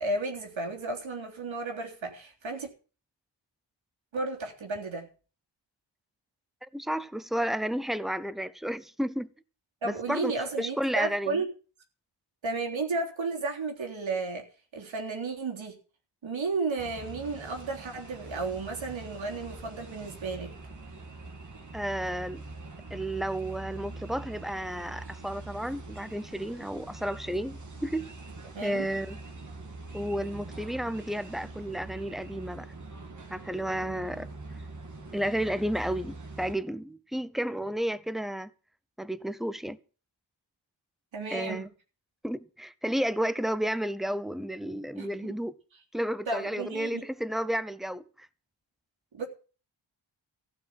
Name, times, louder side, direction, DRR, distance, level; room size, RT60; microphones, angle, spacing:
voice 1, 0.0-2.7 4.1-5.1 9.8-11.5 12.4-14.5 14.7-15.8 16.2-20.5 28.5-28.9 41.1-41.7 45.0-45.4 46.3-47.0 49.1-49.3, right 3 dB, 80° right, 3.5 m, -33 dB
voice 2, 6.6-9.3 9.8-10.3 10.6-11.4 21.7-22.4 22.9-28.0 28.6-29.2 29.9-32.7 33.3-34.3 35.1-38.5 39.0-39.8 41.3-41.7 42.2-45.5 45.9-48.3, equal, ahead, 0.6 m, -32 dB
sound 1, 16.8-36.5, right 2 dB, 40° right, 2.3 m, -44 dB
15.0 x 6.1 x 9.6 m
wide cardioid pair, 150°, 46 cm